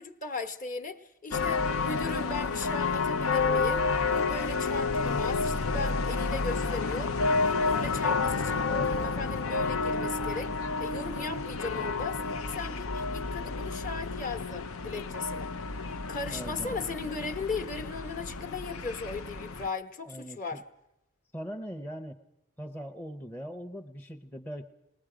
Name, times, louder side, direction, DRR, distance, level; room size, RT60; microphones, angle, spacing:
voice 1, 0.0-10.5 10.8-12.2 12.5-15.5 16.1-20.6, left 3 dB, 35° left, 1.1 m, -37 dB
sound 1, 1.3-19.7, left 4 dB, 80° left, 0.7 m, -30 dB
voice 2, 16.2-16.9 20.1-20.6 21.3-22.2 22.6-24.7, equal, 10° left, 0.7 m, -41 dB
28.0 x 20.0 x 5.0 m
head